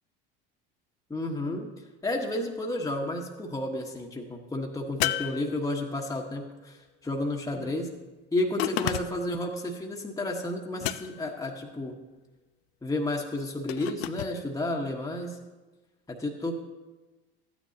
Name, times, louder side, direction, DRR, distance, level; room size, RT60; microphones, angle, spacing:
voice 1, 1.1-1.7 2.0-7.9 8.3-12.0 12.8-15.4 16.1-16.6, left 1 dB, 10° left, 0 dB, 1.2 m, -31 dB
sound 1, 5.0-6.1 8.6-9.4 10.8-11.4 13.7-14.4, left 14 dB, 80° left, 0.5 m, -32 dB
13.0 x 9.3 x 2.8 m, 1.2 s
hypercardioid pair, 75°, 31 cm